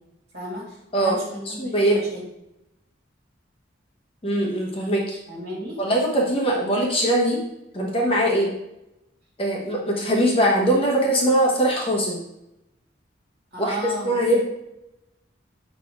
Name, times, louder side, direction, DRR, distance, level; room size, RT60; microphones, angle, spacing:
voice 1, 0.3-2.2 4.9-5.0 5.3-5.8 13.5-14.2, equal, 55° right, -4 dB, 2.2 m, -33 dB
voice 2, 1.5-2.0 4.2-5.2 5.8-7.4 7.7-8.5 9.4-12.2 13.6-13.8 14.0-14.4, right 1 dB, 30° left, -1 dB, 1.1 m, -21 dB
6.4 x 4.2 x 3.6 m, 0.85 s
head